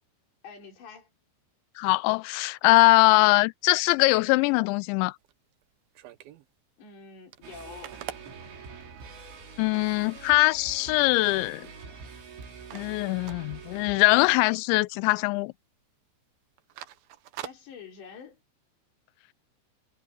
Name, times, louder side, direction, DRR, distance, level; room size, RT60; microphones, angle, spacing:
voice 1, 0.4-1.1 6.8-8.0 17.4-18.4, left 6 dB, 60° left, 7.3 m, -46 dB
voice 2, 1.8-5.1 9.6-11.7 12.7-15.5, left 22 dB, 85° left, 2.6 m, -22 dB
sound 1, 5.1-6.5 6.9-7.0 7.2-9.3 9.8-9.9 10.3-10.7 11.1-12.1 12.4-14.2 14.5-14.7 15.0-15.5 15.7-15.9 16.4-18.4, right 13 dB, 85° right, 2.1 m, -45 dB
sound 2, 7.4-14.4, right 5 dB, 65° right, 8.6 m, -45 dB
omnidirectional pair, 5.9 m